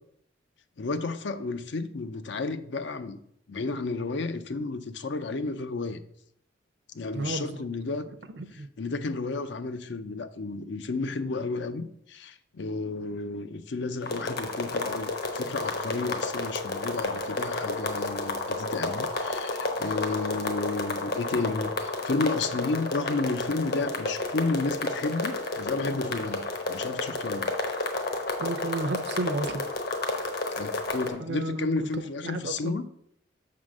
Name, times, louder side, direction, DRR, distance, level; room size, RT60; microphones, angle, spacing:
voice 1, 0.8-3.2 3.5-6.0 6.9-8.1 8.5-27.5 30.5-32.9, left 3 dB, 70° left, 11 dB, 0.5 m, -32 dB
voice 2, 7.1-7.6 8.4-8.7 28.4-29.6 31.2-31.9 32.2-32.8, right 2 dB, 65° right, 11 dB, 0.6 m, -32 dB
sound 1, 14.0-31.1, left 2 dB, 55° left, 1.0 m, -31 dB
6.3 x 3.8 x 6.2 m, 0.71 s
head